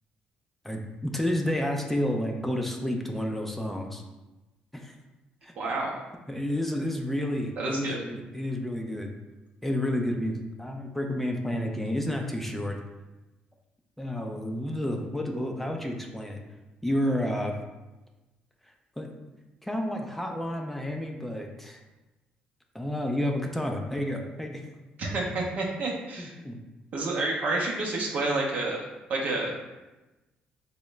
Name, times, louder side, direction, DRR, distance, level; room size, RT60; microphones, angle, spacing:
voice 1, 0.6-4.0 4.7-4.9 5.4-5.5 6.3-9.1 9.6-12.8 14.0-16.4 16.8-17.5 19.0-19.1 19.6-21.8 22.7-24.6 26.4-26.6, left 1 dB, 5° left, 2 dB, 0.4 m, -30 dB
voice 2, 5.6-5.9 7.6-8.0 25.0-26.3 26.9-28.8 29.1-29.5, right 2 dB, 55° right, -2 dB, 0.6 m, -29 dB
3.6 x 2.1 x 3.2 m, 1.1 s
supercardioid pair, 75°, 3 cm